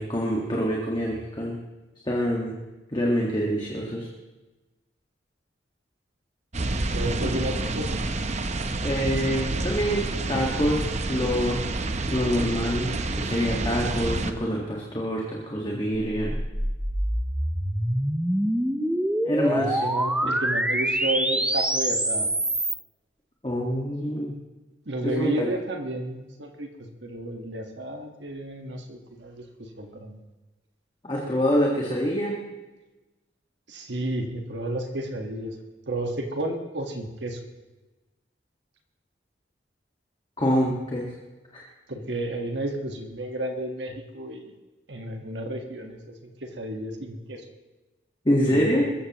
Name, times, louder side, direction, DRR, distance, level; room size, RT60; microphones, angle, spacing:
voice 1, 0.0-1.6 2.0-2.5 2.9-4.1 7.2-7.3 8.8-10.8 11.1-11.6 12.1-16.4 19.2-19.8 20.2-20.3 23.4-24.3 25.0-25.5 31.0-32.3 40.4-41.1 41.5-41.6 48.2-48.9, equal, 25° left, -2 dB, 1.7 m, -26 dB
sound 1, 6.5-14.3, right 2 dB, 35° right, 0.8 m, -28 dB
voice 2, 6.9-8.0 19.4-22.3 24.8-30.2 33.7-35.6 35.9-37.4 41.9-44.5 44.9-47.5 48.4-48.9, right 1 dB, 65° right, 3 dB, 1.5 m, -32 dB
sound 2, 16.1-22.8, right 1 dB, 5° right, 0.7 m, -26 dB
21.5 x 14.5 x 3.0 m, 1.1 s
head